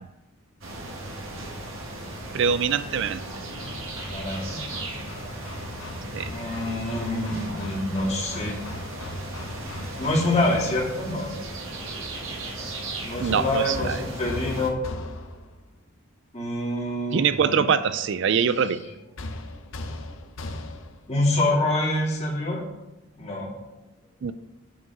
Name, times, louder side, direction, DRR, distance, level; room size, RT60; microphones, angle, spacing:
sound 1, 0.6-14.7, right 1 dB, 75° right, 1.5 m, -36 dB
voice 1, 2.3-3.2 6.1-6.3 13.2-14.0 17.1-18.8 24.2-24.3, right 7 dB, 60° right, 13 dB, 0.4 m, -23 dB
Hammer, 3.6-11.0 13.2-15.6 19.2-21.1, left 2 dB, 70° left, 0.8 m, -38 dB
voice 2, 4.1-4.6 6.3-8.6 10.0-11.3 13.0-14.8 16.3-17.6 21.1-22.6 23.2-23.5, left 1 dB, 30° left, -4 dB, 2.4 m, -26 dB
8.9 x 4.7 x 6.0 m, 1.0 s
head